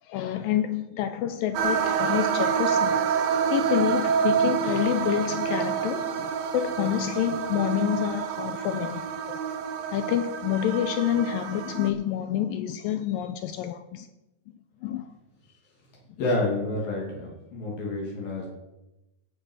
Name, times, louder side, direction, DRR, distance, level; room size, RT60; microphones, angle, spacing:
voice 1, 0.0-3.1 3.5-9.4 9.9-14.1 14.8-15.1, left 11 dB, 85° left, 2.1 m, -28 dB
sound 1, 1.5-11.9, right 7 dB, 70° right, 2.5 m, -27 dB
voice 2, 16.2-18.5, left 2 dB, 65° left, 4.4 m, -29 dB
17.0 x 7.5 x 6.4 m
omnidirectional pair, 4.6 m